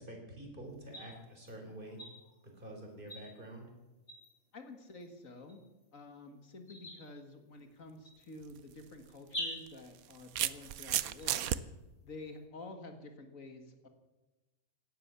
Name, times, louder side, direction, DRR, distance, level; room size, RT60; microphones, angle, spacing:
voice 1, 0.0-2.0 2.5-3.7, right 1 dB, 35° right, 1 dB, 4.3 m, -47 dB
sound 1, 0.6-12.4, left 1 dB, 40° left, 5.0 m, -50 dB
voice 2, 4.5-5.6 5.9-11.5 12.0-13.9, left 2 dB, 70° left, 6 dB, 2.1 m, -50 dB
sound 2, 8.4-8.6 9.7-11.6, right 12 dB, 90° right, 1.1 m, -33 dB
17.0 x 11.5 x 6.9 m, 1.1 s
omnidirectional pair, 1.4 m